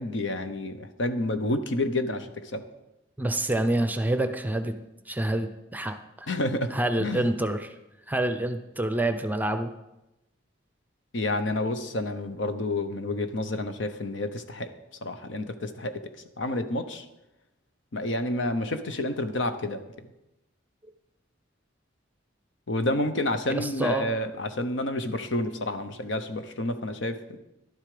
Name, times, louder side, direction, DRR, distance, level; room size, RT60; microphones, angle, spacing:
voice 1, 0.0-2.6 6.3-6.7 7.0-7.3 11.1-14.7 15.0-17.0 17.9-20.1 22.7-27.4, left 1 dB, 70° left, 9 dB, 1.0 m, -29 dB
voice 2, 3.2-4.7 5.1-6.3 6.7-7.7 8.1-9.7 23.5-24.1, right 1 dB, 10° right, 9 dB, 0.7 m, -27 dB
12.0 x 11.0 x 5.0 m, 0.94 s
head